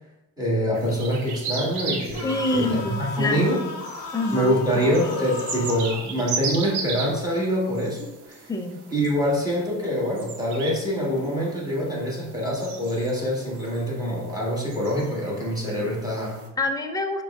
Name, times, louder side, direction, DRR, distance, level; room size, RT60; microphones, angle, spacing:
voice 1, 0.4-3.6 4.3-8.4 8.9-16.4, equal, 10° right, -4 dB, 1.4 m, -25 dB
sound 1, 0.7-16.5, right 4 dB, 75° right, 0.8 m, -37 dB
sound 2, 2.0-6.1, left 4 dB, 55° left, 0.8 m, -36 dB
voice 2, 2.2-3.8 4.1-4.6 8.5-8.8 16.6-17.2, left 2 dB, 10° left, 5 dB, 0.3 m, -26 dB
5.0 x 2.2 x 3.5 m, 0.96 s
cardioid pair, 90°, 40 cm